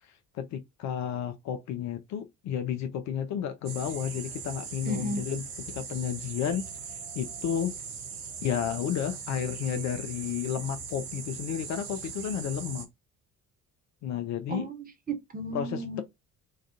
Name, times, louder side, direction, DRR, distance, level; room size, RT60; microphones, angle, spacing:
voice 1, 0.3-5.5 5.7-6.6 6.9-7.7 8.4-12.9 14.0-14.7 15.5-15.8, left 9 dB, 40° left, 0.4 m, -32 dB
sound 1, 3.7-12.9, right 6 dB, 80° right, 0.6 m, -40 dB
voice 2, 4.8-5.3 9.7-9.8 14.5-16.0, right 1 dB, 20° right, 0.5 m, -34 dB
2.3 x 2.3 x 2.5 m
figure-of-eight pair, 45°, 44 cm